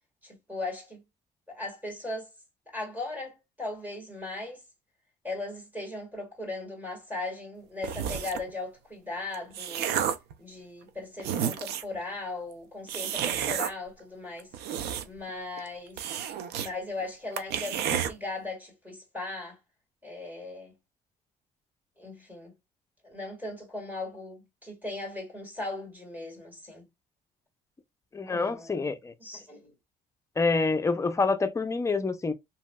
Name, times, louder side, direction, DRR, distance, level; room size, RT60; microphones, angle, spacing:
voice 1, 0.2-1.0 1.5-2.3 2.7-4.6 5.2-10.0 10.4-14.5 15.0-16.0 16.5-19.6 20.0-20.7 22.0-22.5 23.0-26.9 28.3-29.7, left 2 dB, 10° right, 1.7 m, -38 dB
sound 1, 7.8-8.5 9.2-10.3 10.9-11.0 11.2-12.0 12.9-13.7 14.4-15.3 15.6-15.7 16.0-16.7 17.0-17.1 17.4-18.1, right 9 dB, 75° right, 0.5 m, -31 dB
voice 2, 28.1-29.1 30.4-32.3, left 3 dB, 15° left, 0.5 m, -27 dB
3.0 x 2.7 x 2.2 m
cardioid pair, 110°, 17 cm